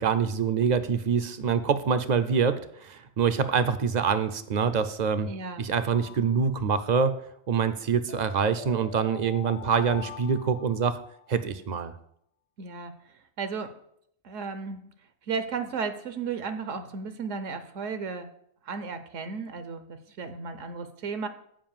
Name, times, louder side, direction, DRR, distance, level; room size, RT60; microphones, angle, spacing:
voice 1, 0.0-5.3 5.6-7.1 7.5-11.0 11.3-11.9, right 6 dB, 55° right, 10 dB, 0.5 m, -25 dB
voice 2, 5.3-5.7 12.6-13.8 14.2-14.8 15.3-18.3 18.6-21.3, right 5 dB, 75° right, 10 dB, 1.1 m, -34 dB
sound 1, 5.9-7.0 8.1-11.3, left 11 dB, 85° left, 1.1 m, -44 dB
7.6 x 5.0 x 7.3 m, 0.70 s
omnidirectional pair, 1.3 m